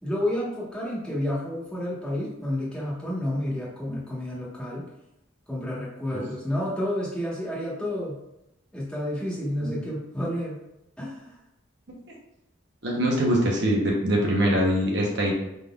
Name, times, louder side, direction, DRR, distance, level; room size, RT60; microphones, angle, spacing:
voice 1, 0.0-4.8 5.5-8.2 8.7-10.6 11.0-11.4, left 1 dB, 5° left, -7 dB, 1.2 m, -30 dB
voice 2, 12.8-15.3, equal, 55° right, -2 dB, 0.9 m, -23 dB
5.2 x 4.0 x 2.3 m, 0.86 s
head